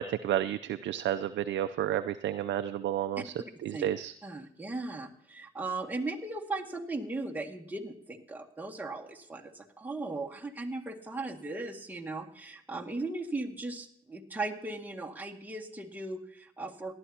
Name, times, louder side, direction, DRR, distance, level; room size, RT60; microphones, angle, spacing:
voice 1, 0.0-3.3 3.6-4.1, right 11 dB, 65° right, 10 dB, 0.5 m, -31 dB
voice 2, 4.2-16.9, right 2 dB, 10° right, 0 dB, 2.0 m, -37 dB
18.5 x 12.0 x 2.9 m, 0.72 s
cardioid pair, 90°, 20 cm